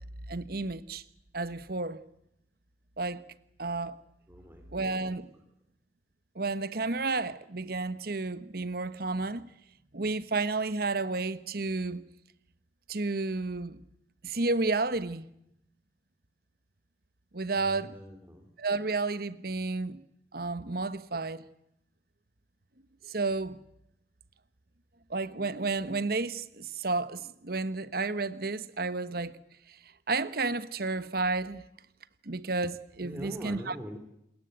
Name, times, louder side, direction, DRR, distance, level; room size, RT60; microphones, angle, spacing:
voice 1, 0.3-1.0 1.3-2.0 3.0-3.2 3.6-4.0 4.7-5.3 6.3-9.4 9.9-12.0 12.9-13.8 14.2-15.3 17.3-18.0 18.6-20.0 20.3-21.5 23.0-23.6 25.1-29.4 29.7-29.8 30.1-31.7 32.2-33.8, right 3 dB, 60° right, 1.2 m, -31 dB
voice 2, 4.3-4.8 17.5-18.4 33.0-34.0, equal, 10° right, 3.3 m, -43 dB
29.0 x 20.5 x 8.1 m
head